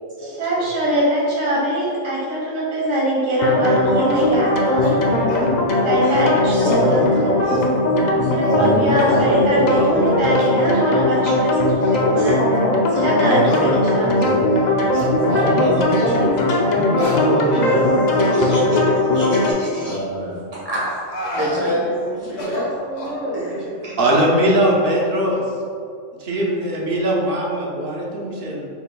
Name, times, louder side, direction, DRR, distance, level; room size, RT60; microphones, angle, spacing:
voice 1, 0.2-4.9 5.8-7.4 8.3-12.4 13.0-14.2, right 1 dB, 80° right, -6 dB, 1.7 m, -22 dB
sound 1, 3.4-19.5, left 1 dB, 55° left, 0.5 m, -19 dB
sound 2, 4.1-4.3 4.8-5.0 5.3-5.5 5.9-6.3 6.6-6.8 7.2-7.7 8.4-8.7 9.1-9.4 9.7-9.9 10.4-10.5 11.1-11.4 11.8-11.9 12.5-12.6 13.4-13.6 14.2-14.4 14.9-15.1 15.9-16.1 17.0-17.9 18.2-18.3 19.0-19.3 19.8-20.0 20.8-21.5 22.2-23.2, left 1 dB, 70° left, 1.3 m, -32 dB
voice 2, 4.8-5.3 6.5-10.7 11.8-12.4 12.9-18.8 19.1-21.0 21.3-24.0, right 1 dB, 30° right, -7 dB, 1.3 m, -25 dB
voice 3, 24.0-25.4 26.2-28.7, right 1 dB, 50° right, -3 dB, 1.0 m, -20 dB
5.6 x 4.2 x 2.2 m, 2.4 s
omnidirectional pair, 1.3 m